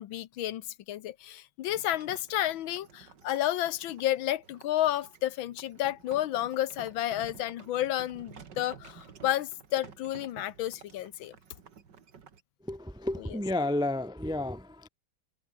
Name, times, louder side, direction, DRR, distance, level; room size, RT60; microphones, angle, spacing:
voice 1, 0.0-11.3 13.2-13.4, left 13 dB, 80° left, 1.6 m, -31 dB
sound 1, 1.7-12.4, right 6 dB, 60° right, 2.5 m, -52 dB
voice 2, 12.7-14.9, left 1 dB, 5° right, 0.3 m, -31 dB
omnidirectional pair, 2.1 m